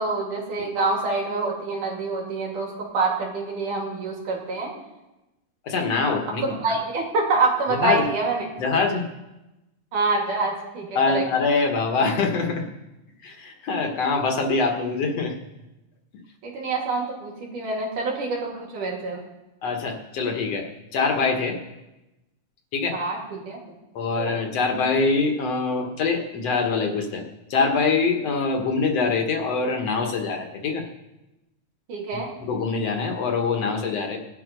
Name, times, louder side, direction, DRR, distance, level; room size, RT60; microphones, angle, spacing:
voice 1, 0.0-4.7 6.4-8.5 9.9-11.3 16.4-19.2 22.9-23.6 24.2-24.4 31.9-32.3, right 3 dB, 90° right, -1 dB, 4.3 m, -26 dB
voice 2, 5.6-6.6 7.7-8.1 8.6-9.0 11.0-12.6 13.2-15.3 19.6-20.7 20.9-21.6 22.7-23.0 23.9-27.2 27.5-30.8 32.1-34.2, left 4 dB, 60° left, 3 dB, 2.4 m, -24 dB
18.5 x 11.0 x 5.3 m, 1.0 s
omnidirectional pair, 3.5 m